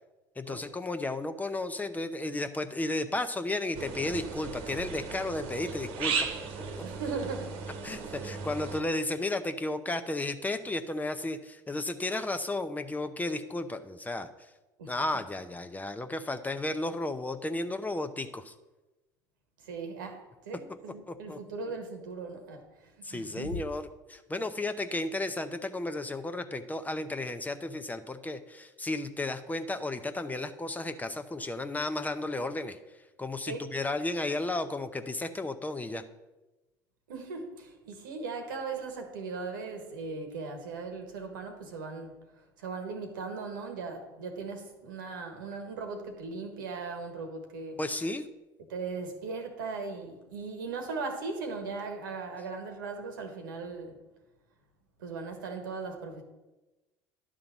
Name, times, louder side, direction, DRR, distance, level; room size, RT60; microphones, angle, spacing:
voice 1, 0.4-6.3 6.7-6.8 7.8-14.3 14.9-18.5 21.1-21.4 23.0-32.8 33.2-36.0 47.8-48.2, left 2 dB, 15° left, 9 dB, 0.7 m, -33 dB
sound 1, 3.7-8.8, right 5 dB, 65° right, 1.2 m, -36 dB
voice 2, 6.8-7.6 14.8-14.9 19.6-23.6 33.5-33.6 37.1-42.1 42.6-47.8 48.7-54.0 55.0-56.2, right 4 dB, 85° right, 5 dB, 1.4 m, -38 dB
11.0 x 3.8 x 7.2 m, 1.1 s
hypercardioid pair, 75°, 11 cm